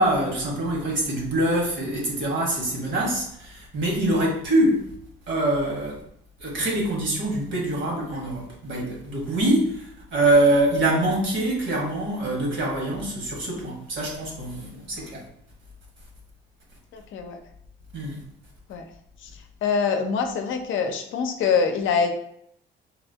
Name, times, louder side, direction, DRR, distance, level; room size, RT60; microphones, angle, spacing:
voice 1, 0.0-4.9 5.3-6.0 6.4-9.8 10.1-15.2 17.9-18.2, right 1 dB, 70° right, -2 dB, 1.3 m, -24 dB
voice 2, 16.9-17.4 18.7-18.8 19.6-22.2, left 5 dB, 75° left, 5 dB, 0.5 m, -24 dB
3.9 x 2.1 x 2.7 m, 0.70 s
cardioid pair, 90°, 20 cm